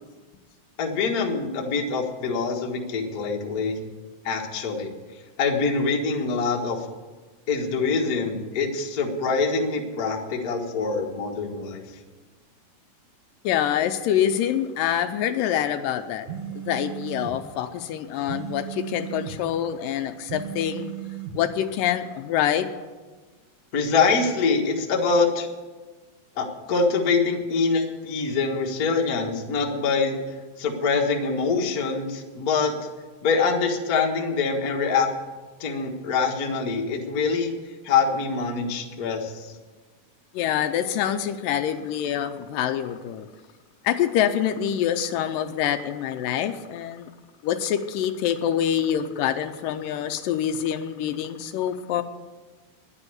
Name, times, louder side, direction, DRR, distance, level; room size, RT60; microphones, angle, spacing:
voice 1, 0.8-3.7 4.2-4.9 5.4-6.9 7.5-11.8 23.7-25.5 26.4-30.2 30.6-32.9 33.2-35.1 35.6-37.5 37.8-39.5, left 4 dB, 50° left, 1 dB, 1.1 m, -24 dB
voice 2, 13.4-16.3 16.5-20.9 21.4-22.7 40.3-43.3 43.8-47.1 47.4-52.0, left 10 dB, 80° left, 9 dB, 2.2 m, -26 dB
sound 1, 16.3-17.4 18.3-19.4 20.3-21.4, right 10 dB, 60° right, 2.1 m, -35 dB
10.5 x 9.8 x 9.6 m, 1.3 s
omnidirectional pair, 4.1 m